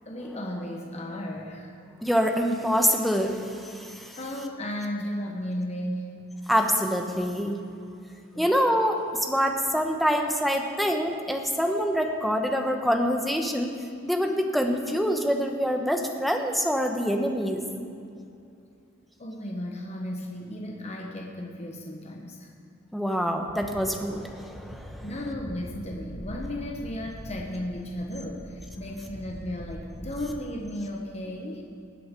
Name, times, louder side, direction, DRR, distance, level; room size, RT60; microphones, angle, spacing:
voice 1, 0.1-1.7 4.2-6.1 8.3-8.5 19.2-22.5 25.0-31.6, left 1 dB, 35° left, 0 dB, 1.1 m, -34 dB
voice 2, 2.0-4.2 6.5-7.6 8.4-13.7 14.0-17.7 22.9-25.0, equal, ahead, 3 dB, 1.0 m, -25 dB
sound 1, 23.5-30.4, equal, 50° left, 1.7 m, -42 dB
19.0 x 7.9 x 5.2 m, 2.5 s
head